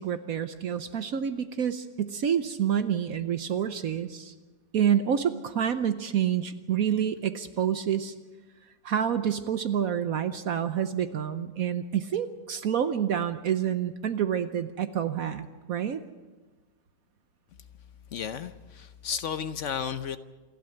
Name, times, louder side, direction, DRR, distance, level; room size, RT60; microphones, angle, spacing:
voice 1, 0.0-4.3 4.7-8.1 8.8-16.0, right 9 dB, 60° right, 10 dB, 1.1 m, -28 dB
voice 2, 18.1-20.2, left 7 dB, 55° left, 11 dB, 0.9 m, -33 dB
27.5 x 12.0 x 7.8 m, 1.3 s
omnidirectional pair, 1.9 m